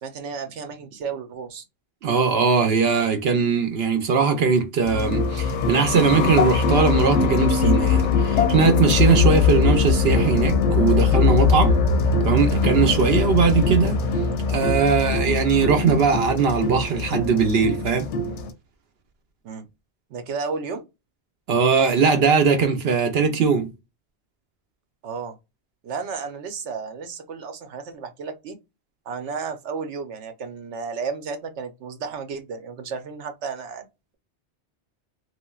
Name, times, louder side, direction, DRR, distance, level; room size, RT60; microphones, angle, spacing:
voice 1, 0.0-1.6 19.4-19.7 20.1-20.8 25.0-25.4 25.8-28.6 29.1-33.9, right 5 dB, 90° right, 1.0 m, -33 dB
voice 2, 2.0-11.8 12.2-14.0 14.5-18.1 21.5-23.7, right 5 dB, 65° right, 0.8 m, -20 dB
sound 1, 4.8-18.5, left 5 dB, 85° left, 0.9 m, -21 dB
3.1 x 2.5 x 2.3 m
omnidirectional pair, 1.1 m